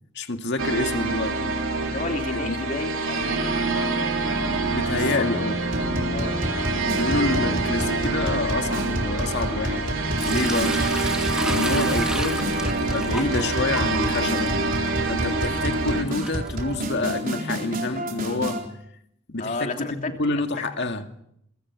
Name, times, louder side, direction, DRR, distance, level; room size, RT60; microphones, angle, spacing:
voice 1, 0.1-1.9 2.3-2.6 4.7-5.6 7.0-9.9 10.3-10.8 11.4-14.5 15.0-18.6 19.3-21.0, left 2 dB, 55° left, 2.1 m, -28 dB
sound 1, 0.6-16.0, right 3 dB, 70° right, 3.2 m, -26 dB
voice 2, 1.9-3.7 4.9-5.0 6.0-6.4 19.4-20.1, left 2 dB, 40° left, 3.0 m, -32 dB
sound 2, 5.7-18.6, equal, 45° right, 4.0 m, -30 dB
Sink (filling or washing) / Liquid, 10.2-17.1, right 1 dB, 5° right, 2.4 m, -34 dB
25.0 x 23.5 x 6.1 m
head